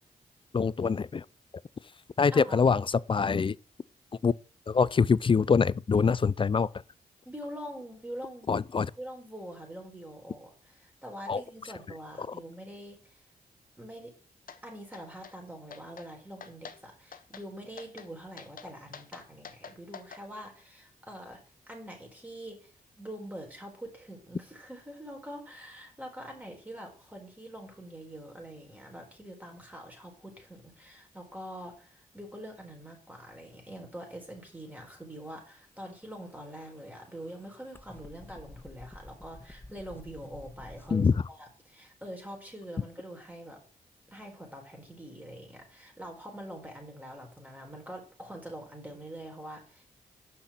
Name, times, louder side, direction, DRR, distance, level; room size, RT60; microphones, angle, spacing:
voice 1, 0.5-1.2 2.2-3.6 4.2-4.3 4.7-6.7 8.5-8.9 11.3-11.4 12.2-12.3 40.9-41.1, left 5 dB, 30° left, 0.4 m, -24 dB
voice 2, 2.3-2.8 7.3-8.6 9.0-13.2 13.8-14.1 14.6-21.4 21.7-43.6 44.1-49.9, right 1 dB, 10° right, 4.4 m, -44 dB
sound 1, 14.5-14.6 14.9-15.4 15.7-16.1 16.4-16.8 17.1-17.5 17.8-18.1 18.4-20.2, left 6 dB, 60° left, 1.0 m, -46 dB
sound 2, 35.9-41.1, left 1 dB, 15° left, 1.3 m, -51 dB
6.4 x 5.9 x 7.3 m
supercardioid pair, 50°, 16 cm